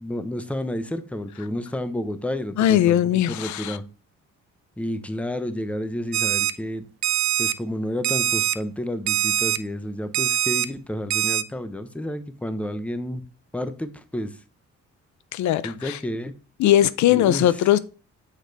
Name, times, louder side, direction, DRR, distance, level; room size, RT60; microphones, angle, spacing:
voice 1, 0.0-3.0 3.3-3.8 4.8-6.8 7.4-13.2 13.5-14.4 15.6-16.3 17.1-17.5, left 1 dB, 5° left, 0.7 m, -30 dB
voice 2, 2.6-3.8 15.3-16.0 16.6-17.8, left 12 dB, 70° left, 0.5 m, -19 dB
Alarm, 6.1-6.5 7.0-7.5 8.0-8.5 9.1-9.6 10.1-10.7 11.1-11.4, right 13 dB, 65° right, 0.5 m, -23 dB
6.6 x 4.8 x 3.9 m
cardioid pair, 90°, 30 cm